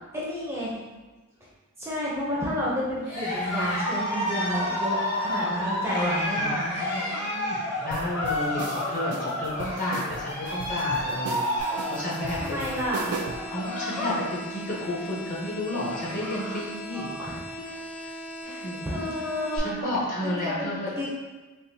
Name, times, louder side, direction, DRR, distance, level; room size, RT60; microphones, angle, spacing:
voice 1, 0.1-0.7 1.8-6.8 12.4-13.2 16.4-16.6 16.9-17.8 18.4-19.9 20.2-21.1, equal, 10° right, -7 dB, 0.6 m, -31 dB
Cheering, 3.0-14.3 14.6-15.0 15.4-15.5 15.7-16.5, left 1 dB, 70° left, 1.4 m, -30 dB
voice 2, 6.3-12.6 13.5-17.1 18.0-18.1 18.4-19.1 19.5-20.9, left 1 dB, 35° left, -5 dB, 0.8 m, -32 dB
sound 1, 7.9-13.5, right 4 dB, 85° right, 0.3 m, -37 dB
sound 2, 11.6-19.6, equal, 90° left, 0.6 m, -39 dB
3.6 x 2.6 x 2.7 m, 1.2 s
head